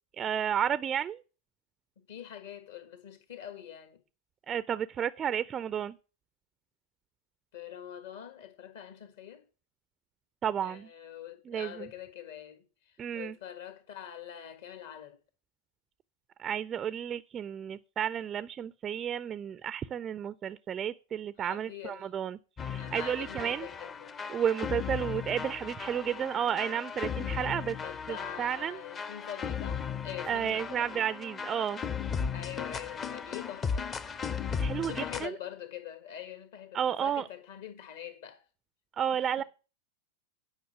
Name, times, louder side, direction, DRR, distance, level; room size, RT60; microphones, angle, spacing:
voice 1, 0.2-1.2 4.5-6.0 10.4-10.9 11.5-11.9 13.0-13.4 16.4-22.4 22.7-23.7 24.3-27.8 28.1-28.8 30.3-31.8 34.6-35.3 36.7-37.3 39.0-39.4, right 9 dB, 25° right, 0.4 m, -32 dB
voice 2, 2.0-4.0 7.5-9.4 10.6-15.2 21.4-22.1 22.8-24.1 27.8-31.0 32.3-33.9 34.8-38.4 39.1-39.4, left 10 dB, 55° left, 1.6 m, -44 dB
sound 1, 22.6-35.3, left 6 dB, 20° left, 0.7 m, -36 dB
10.5 x 5.7 x 7.4 m
figure-of-eight pair, 90°, 0 cm